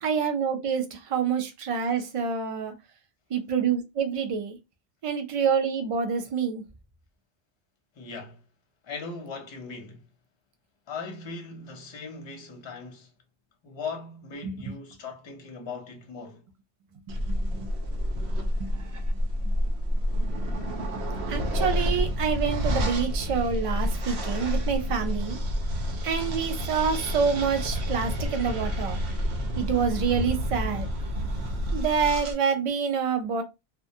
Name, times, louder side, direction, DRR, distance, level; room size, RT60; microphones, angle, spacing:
voice 1, 0.0-2.7 3.3-4.6 5.0-6.6 14.4-14.6 17.4-17.6 18.6-18.7 21.3-25.4 26.0-29.0 29.6-30.9 31.7-33.4, right 6 dB, 45° right, 0.4 m, -27 dB
voice 2, 8.0-8.4 8.8-10.0 10.9-13.1 13.6-16.4, left 4 dB, 35° left, 0.5 m, -39 dB
sound 1, 17.1-32.3, equal, 90° right, 0.9 m, -29 dB
2.4 x 2.1 x 2.6 m
omnidirectional pair, 1.1 m